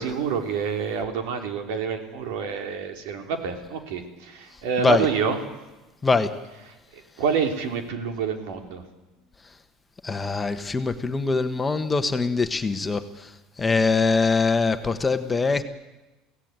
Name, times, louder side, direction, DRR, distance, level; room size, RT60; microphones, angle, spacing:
voice 1, 0.0-5.4 7.2-8.8, right 6 dB, 85° right, 5 dB, 3.3 m, -27 dB
voice 2, 10.0-13.0 13.6-15.6, left 4 dB, 15° left, 7 dB, 1.2 m, -23 dB
24.0 x 16.5 x 9.0 m, 1.1 s
cardioid pair, 155°, 0 cm